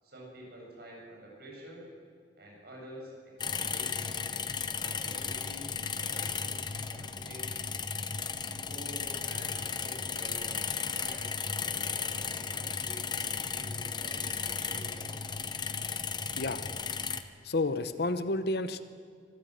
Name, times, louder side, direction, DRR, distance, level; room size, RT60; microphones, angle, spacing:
voice 1, 0.0-1.8 2.4-3.1 3.4-4.2 4.6-7.6 8.5-15.2, equal, 60° right, -3 dB, 7.6 m, -49 dB
sound 1, 3.4-17.2, left 6 dB, 25° left, 0.7 m, -35 dB
voice 2, 17.4-18.8, left 2 dB, 60° left, 11 dB, 0.9 m, -30 dB
23.5 x 14.5 x 7.6 m, 2.2 s
head